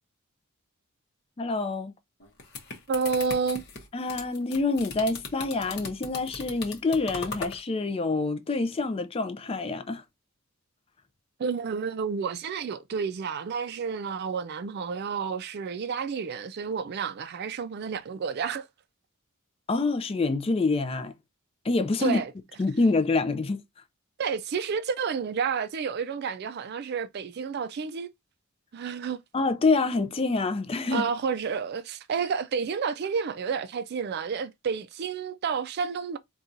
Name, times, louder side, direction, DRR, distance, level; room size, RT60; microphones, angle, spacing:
voice 1, 1.4-1.9 3.9-10.0 19.7-21.1 21.6-22.2 22.6-23.6 29.3-31.1, left 3 dB, 25° left, 0.4 m, -26 dB
sound 1, 2.2-7.6, left 4 dB, 50° left, 0.9 m, -38 dB
voice 2, 2.9-3.6 11.4-18.7 22.0-22.3 24.2-28.1 28.7-29.2 30.9-36.2, right 6 dB, 50° right, 0.3 m, -30 dB
4.2 x 2.3 x 2.5 m
head